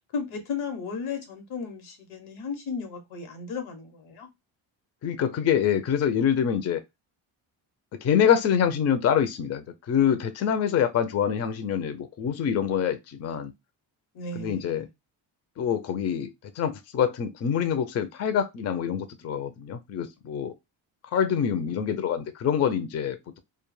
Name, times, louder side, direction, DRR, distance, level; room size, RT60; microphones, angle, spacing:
voice 1, 0.1-4.3 14.1-14.9, left 5 dB, 90° left, 0.9 m, -35 dB
voice 2, 5.0-6.8 8.0-13.5 14.4-14.9 15.6-20.5 21.1-23.4, left 8 dB, 35° left, 0.4 m, -25 dB
2.2 x 2.0 x 3.1 m
cardioid pair, 95°, 48 cm